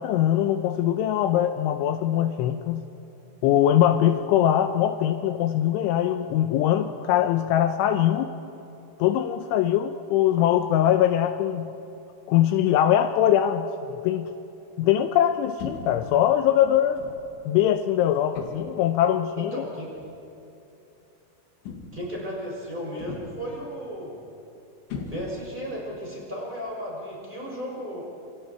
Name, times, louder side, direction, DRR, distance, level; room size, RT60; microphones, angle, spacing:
voice 1, 0.0-2.8 3.4-8.3 9.0-11.7 12.3-14.3 14.8-17.0 17.5-19.6, left 11 dB, 80° left, 8 dB, 3.0 m, -22 dB
sound 1, 15.6-16.1 17.0-17.3 18.3-18.8 20.0-20.2 21.6-22.1 23.0-23.5 24.9-25.6, left 5 dB, 65° left, 4.3 m, -38 dB
voice 2, 19.4-19.9 21.9-24.2 25.0-28.0, equal, 10° right, -4 dB, 5.8 m, -34 dB
27.5 x 26.5 x 4.6 m, 2.9 s
omnidirectional pair, 5.7 m